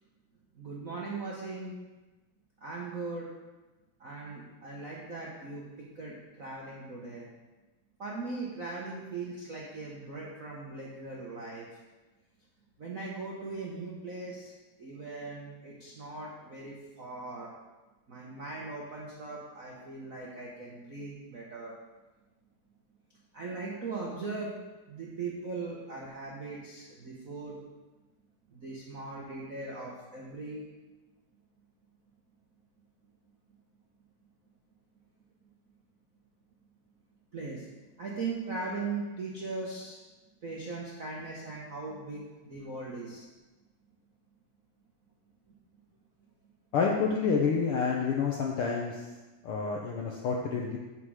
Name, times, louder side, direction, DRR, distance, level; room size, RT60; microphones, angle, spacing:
voice 1, 0.5-1.8 2.6-3.3 4.0-5.6 5.9-7.3 8.0-11.7 12.8-14.5 14.8-17.5 18.1-21.7 23.3-24.5 24.9-27.6 28.5-30.6 37.3-37.7 38.0-40.0 40.4-43.3, right 3 dB, 85° right, -4 dB, 0.7 m, -39 dB
voice 2, 46.7-49.0 49.4-50.8, left 5 dB, 75° left, -1 dB, 1.3 m, -28 dB
7.7 x 7.6 x 4.9 m, 1.2 s
omnidirectional pair, 3.5 m